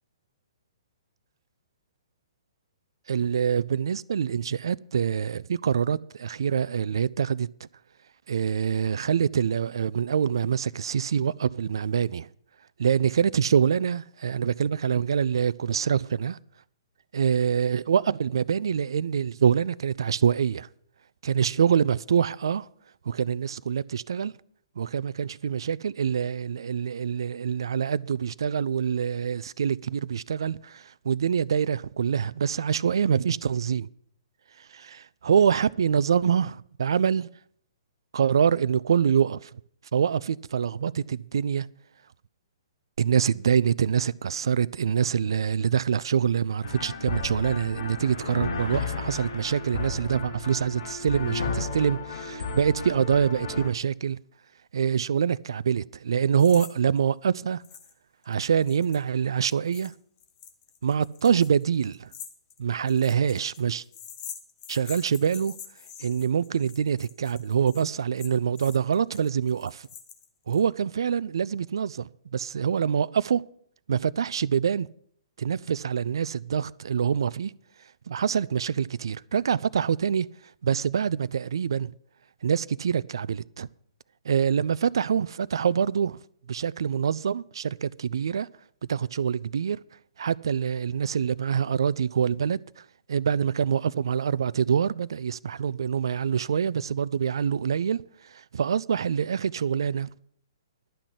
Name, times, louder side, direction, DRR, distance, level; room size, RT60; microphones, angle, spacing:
voice 1, 3.1-7.5 8.3-12.3 12.8-16.4 17.1-20.7 21.2-22.7 23.1-24.3 24.8-33.9 34.6-37.3 38.1-39.6 39.9-41.7 43.0-54.2 54.7-57.6 58.3-59.9 60.8-62.1 62.6-63.8 64.7-65.5 66.0-69.9 70.5-73.4 73.9-74.9 75.4-77.5 78.1-80.3 80.6-81.9 82.4-83.7 84.3-86.2 86.5-88.5 88.9-89.8 90.2-100.1, right 7 dB, 60° right, 0.4 m, -25 dB
sound 1, 46.6-53.7, left 4 dB, 60° left, 1.6 m, -33 dB
sound 2, 56.4-56.7 57.0-57.1 57.6-57.9 58.2-70.6, left 8 dB, 30° left, 1.3 m, -45 dB
11.5 x 6.0 x 8.3 m
figure-of-eight pair, 120°, 3 cm